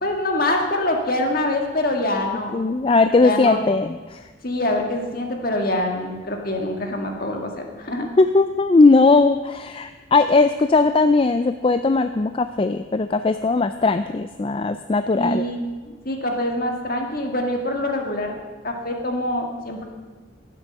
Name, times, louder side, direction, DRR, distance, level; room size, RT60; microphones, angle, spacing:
voice 1, 0.0-2.5 3.2-3.6 4.4-8.1 15.1-18.4 18.6-19.9, left 1 dB, 45° left, 2 dB, 1.8 m, -25 dB
voice 2, 2.5-4.3 8.2-15.5, left 3 dB, 25° left, 10 dB, 0.3 m, -18 dB
16.0 x 7.7 x 6.6 m, 1.3 s
head